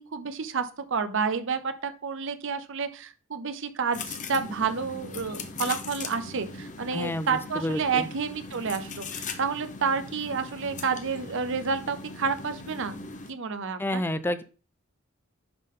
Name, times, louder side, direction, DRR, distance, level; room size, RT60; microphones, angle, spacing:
voice 1, 0.0-13.0 13.3-14.0, right 5 dB, 65° right, 10 dB, 0.7 m, -30 dB
sound 1, 3.9-13.3, left 4 dB, 35° left, 0.7 m, -39 dB
voice 2, 6.9-8.1 13.8-14.4, left 1 dB, 10° left, 12 dB, 0.3 m, -30 dB
10.5 x 3.7 x 3.8 m, 0.36 s
head